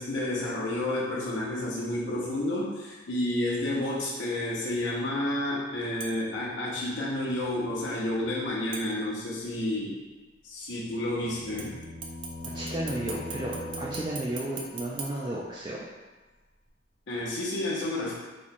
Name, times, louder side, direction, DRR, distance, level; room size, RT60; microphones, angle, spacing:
voice 1, 0.0-10.0 10.4-11.9 17.1-18.1, left 1 dB, 65° left, -5 dB, 0.7 m, -30 dB
sound 1, 6.0-6.4 8.7-9.4 11.6-16.0 16.4-16.5, right 3 dB, 80° right, 0.5 m, -42 dB
sound 2, 10.8-14.7, equal, 20° left, 0.6 m, -40 dB
voice 2, 12.4-15.8, right 1 dB, 25° right, -5 dB, 0.3 m, -33 dB
3.0 x 2.2 x 4.0 m, 1.2 s
head